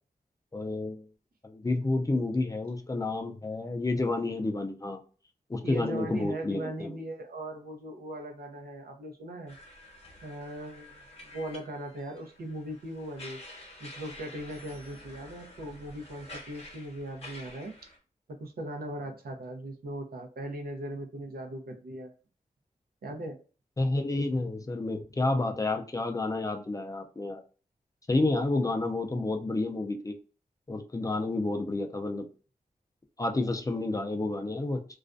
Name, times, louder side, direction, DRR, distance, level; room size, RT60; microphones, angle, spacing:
voice 1, 0.5-1.1 1.4-5.0 5.5-7.0 23.8-27.4 28.1-30.1 30.7-32.3 33.2-34.9, left 2 dB, 25° left, 4 dB, 0.4 m, -30 dB
voice 2, 5.6-9.6 10.2-13.4 13.8-17.7 18.4-22.1 23.0-23.4, right 1 dB, 85° right, 3 dB, 0.6 m, -39 dB
sound 1, 9.5-18.0, left 1 dB, 40° left, 0.8 m, -49 dB
2.4 x 2.2 x 2.5 m, 0.36 s
wide cardioid pair, 95°, 15 cm